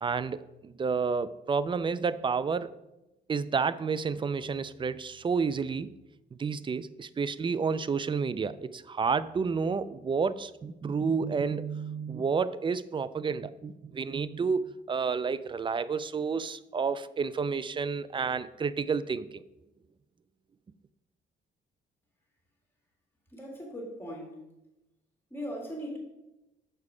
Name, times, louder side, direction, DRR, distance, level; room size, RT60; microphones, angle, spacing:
voice 1, 0.0-2.7 3.3-5.9 6.4-19.4, right 5 dB, 25° right, 16 dB, 0.3 m, -30 dB
voice 2, 23.3-24.4 25.3-26.0, equal, 10° left, -1 dB, 2.3 m, -39 dB
6.6 x 4.8 x 4.9 m, 0.96 s
cardioid pair, 90°, 20 cm